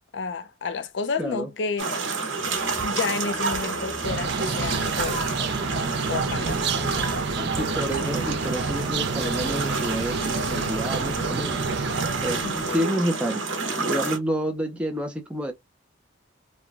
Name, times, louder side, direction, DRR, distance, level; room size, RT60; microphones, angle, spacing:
voice 1, 0.1-2.0 2.8-5.2 6.1-6.5 12.4-12.8, left 5 dB, 65° left, 0.5 m, -30 dB
voice 2, 1.2-1.5 7.6-11.6 12.2-13.4 13.8-15.5, equal, 5° right, 0.4 m, -29 dB
sound 1, 1.8-14.2, right 4 dB, 75° right, 0.9 m, -29 dB
sound 2, 2.4-9.6, equal, 35° right, 1.1 m, -42 dB
sound 3, 4.0-12.8, right 4 dB, 60° right, 0.5 m, -30 dB
3.1 x 2.2 x 2.4 m
head